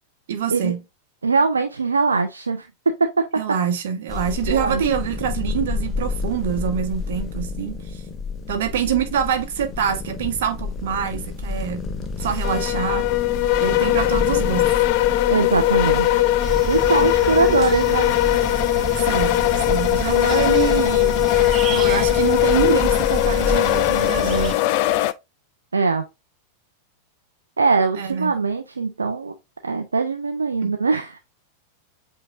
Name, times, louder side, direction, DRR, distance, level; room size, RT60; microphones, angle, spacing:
voice 1, 0.3-0.8 3.4-8.0 8.5-11.8 12.2-13.1 13.6-14.7 19.0-19.4 19.7-21.1 21.7-24.5 28.0-28.3 30.6-30.7, right 8 dB, 55° right, 1.0 m, -25 dB
voice 2, 1.2-2.7 3.0-3.3 4.5-4.8 15.3-16.3 16.7-18.1 25.7-26.1 27.6-29.3 29.6-31.2, right 4 dB, 75° right, 0.5 m, -21 dB
sound 1, 4.1-23.6, left 4 dB, 20° left, 0.8 m, -30 dB
sound 2, 12.4-25.1, left 16 dB, 45° left, 0.4 m, -20 dB
sound 3, 16.4-24.5, right 5 dB, 25° right, 0.6 m, -31 dB
7.8 x 2.8 x 2.4 m
figure-of-eight pair, 90°, 0 cm